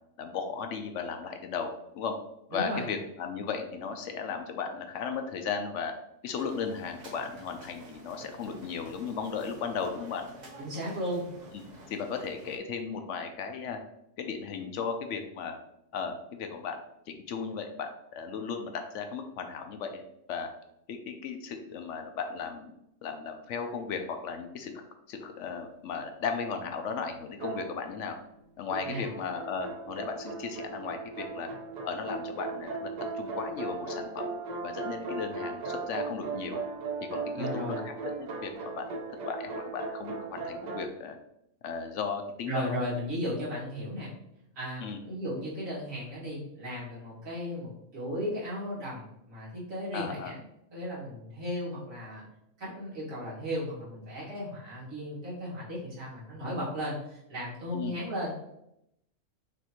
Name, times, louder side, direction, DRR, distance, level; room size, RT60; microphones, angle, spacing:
voice 1, 0.2-1.7 1.9-2.1 2.5-5.9 6.2-10.2 11.5-11.6 11.9-13.8 14.2-15.5 15.9-16.8 17.1-20.5 20.9-22.7 23.0-28.2 28.6-31.5 31.8-32.9 33.1-34.3 34.6-36.6 37.1-37.9 38.2-38.9 39.3-41.2 41.6-42.8 44.8-45.0 49.9-50.3 57.7-58.0, left 5 dB, 70° left, 6 dB, 0.9 m, -36 dB
voice 2, 2.5-2.8 10.6-11.3 28.8-29.1 37.4-37.8 42.5-44.1 44.6-50.4 50.7-52.2 52.6-58.3, equal, 85° right, -7 dB, 2.2 m, -35 dB
sound 1, 6.3-12.6, right 1 dB, 35° right, 1.1 m, -50 dB
sound 2, 27.4-28.2 28.7-40.9, right 4 dB, 55° right, 0.5 m, -37 dB
6.1 x 2.6 x 2.9 m, 0.80 s
omnidirectional pair, 1.3 m